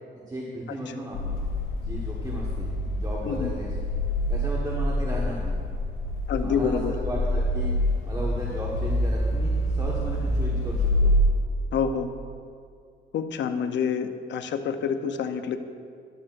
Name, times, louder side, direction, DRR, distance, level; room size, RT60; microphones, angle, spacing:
voice 1, 0.1-1.4 1.8-3.8 4.3-5.6 6.3-7.7 8.0-11.1, right 1 dB, 20° right, -4 dB, 1.4 m, -35 dB
sound 1, 1.1-11.2, left 1 dB, 90° left, 1.3 m, -26 dB
voice 2, 6.3-6.9 11.7-12.1 13.1-15.6, left 6 dB, 65° left, 8 dB, 0.7 m, -27 dB
13.5 x 11.0 x 2.6 m, 2.2 s
cardioid pair, 90°, 20 cm